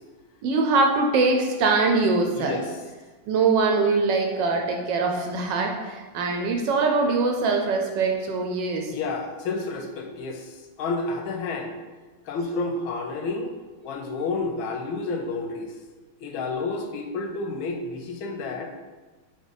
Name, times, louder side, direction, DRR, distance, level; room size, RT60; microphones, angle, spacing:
voice 1, 0.4-2.6 3.3-8.9, right 3 dB, 75° right, 2 dB, 1.1 m, -23 dB
voice 2, 2.3-2.7 8.9-11.8 12.3-13.5 13.8-15.7 16.2-18.7, left 3 dB, 85° left, 3 dB, 1.4 m, -30 dB
3.7 x 3.6 x 3.9 m, 1.3 s
omnidirectional pair, 2.2 m